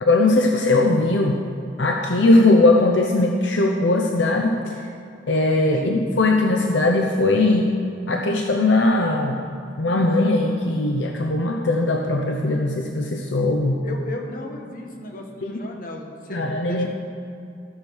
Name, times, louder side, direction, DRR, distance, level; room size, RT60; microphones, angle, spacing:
voice 1, 0.0-1.4 1.8-4.7 5.3-7.7 8.1-9.4 9.8-13.8 15.4-15.5 16.3-16.9, left 2 dB, 75° left, 2 dB, 0.8 m, -19 dB
voice 2, 13.8-16.9, left 1 dB, 50° left, 1 dB, 1.4 m, -35 dB
13.5 x 6.2 x 6.4 m, 2.5 s
head